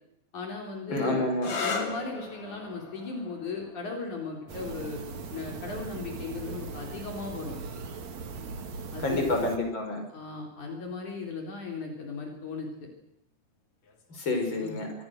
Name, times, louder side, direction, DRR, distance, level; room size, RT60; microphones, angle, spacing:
voice 1, 0.3-1.2 1.6-5.0 5.3-7.6 8.9-9.3 10.1-12.9 14.6-14.8, left 4 dB, 65° left, 1 dB, 5.5 m, -37 dB
voice 2, 0.9-1.6 9.0-10.0 14.1-14.9, left 2 dB, 35° left, 4 dB, 6.1 m, -28 dB
sound 1, 1.3-8.8 9.8-10.3 13.8-14.2, left 4 dB, 85° left, 4.8 m, -40 dB
sound 2, 4.5-9.6, right 4 dB, 60° right, 3.3 m, -39 dB
25.5 x 23.0 x 6.7 m, 0.80 s
omnidirectional pair, 3.7 m